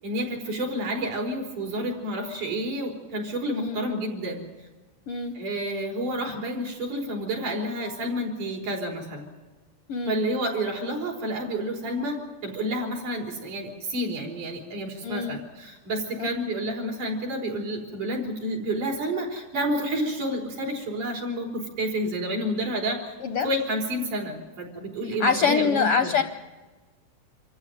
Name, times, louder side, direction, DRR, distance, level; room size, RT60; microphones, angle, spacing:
voice 1, 0.0-4.4 5.4-9.3 10.1-23.1 23.4-26.2, right 1 dB, 70° right, 0 dB, 5.7 m, -30 dB
voice 2, 3.5-3.9 5.1-5.4 9.9-10.2 15.0-15.4 16.2-16.3 23.2-23.5 25.0-26.2, left 6 dB, 70° left, 8 dB, 1.4 m, -25 dB
26.5 x 14.5 x 9.3 m, 1.3 s
omnidirectional pair, 3.7 m